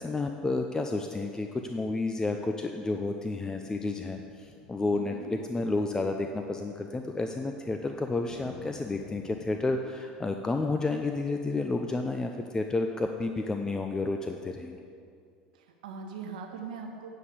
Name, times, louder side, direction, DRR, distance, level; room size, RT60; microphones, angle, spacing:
voice 1, 0.0-14.8, left 3 dB, 15° left, 4 dB, 0.6 m, -31 dB
sound 1, 3.4-9.7, left 5 dB, 55° left, 1.2 m, -52 dB
voice 2, 4.9-5.3 15.5-17.1, right 5 dB, 80° right, 3 dB, 1.4 m, -41 dB
9.2 x 5.6 x 8.3 m, 2.3 s
hypercardioid pair, 80°, 4 cm